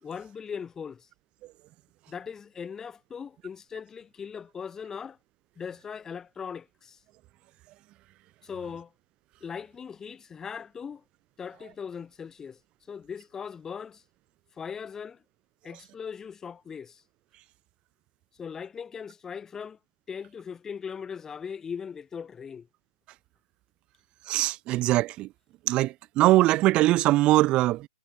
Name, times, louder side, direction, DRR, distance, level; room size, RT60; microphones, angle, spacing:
voice 1, 0.0-1.1 2.1-5.2 5.6-7.0 8.4-8.9 9.4-11.0 11.4-12.6 12.9-14.0 14.6-15.2 15.6-17.0 18.4-19.8 20.1-22.7, left 6 dB, 15° left, 2.6 m, -39 dB
voice 2, 24.3-25.3 25.7-27.9, right 17 dB, 25° right, 1.4 m, -22 dB
figure-of-eight pair, 120°, 4 cm